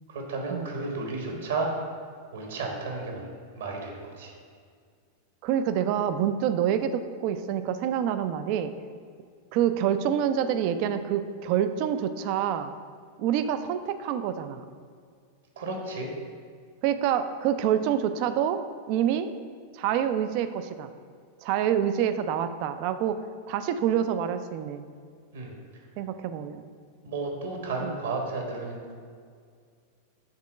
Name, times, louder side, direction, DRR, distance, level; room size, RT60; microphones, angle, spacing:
voice 1, 0.1-1.7 2.3-4.3 15.6-16.1 25.3-25.5 27.0-28.9, right 3 dB, 60° right, 1 dB, 1.1 m, -33 dB
voice 2, 5.4-8.7 9.5-12.7 13.2-14.6 16.8-18.6 18.9-19.3 19.7-20.9 21.4-23.2 23.5-24.8 26.0-26.6 27.9-28.0, right 9 dB, 45° right, 10 dB, 0.4 m, -27 dB
7.2 x 3.6 x 4.8 m, 2.1 s
figure-of-eight pair, 90°, 0 cm